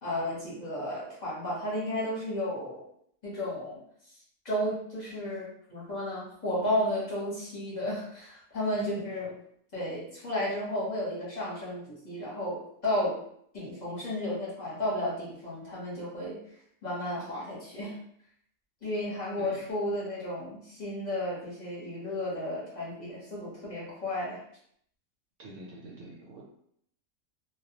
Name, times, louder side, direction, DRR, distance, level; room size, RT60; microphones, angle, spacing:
voice 1, 0.0-2.8 3.2-3.8 4.4-9.3 9.7-13.2 13.5-16.4 16.8-17.9 18.8-24.4, left 1 dB, 35° left, -7 dB, 0.9 m, -33 dB
voice 2, 19.4-19.7 25.4-26.4, right 1 dB, 70° right, -3 dB, 0.8 m, -46 dB
2.3 x 2.1 x 2.7 m, 0.68 s
omnidirectional pair, 1.4 m